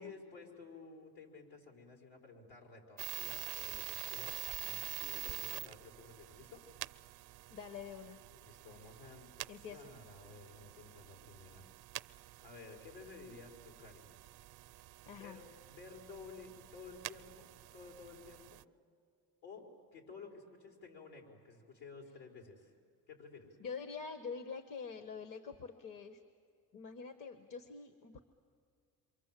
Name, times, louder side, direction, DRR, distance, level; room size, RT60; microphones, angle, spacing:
voice 1, 0.0-6.6 8.4-11.7 12.4-14.1 15.1-18.6 19.4-22.7 23.1-23.6, left 4 dB, 80° left, 1 dB, 5.0 m, -54 dB
sound 1, 3.0-18.6, right 15 dB, 75° right, 0.6 m, -47 dB
voice 2, 7.5-8.2 9.5-9.8 15.1-15.4 23.6-26.2 26.7-28.2, left 5 dB, 55° left, 9 dB, 1.3 m, -46 dB
27.5 x 24.0 x 7.6 m, 2.2 s
cardioid pair, 90°, 39 cm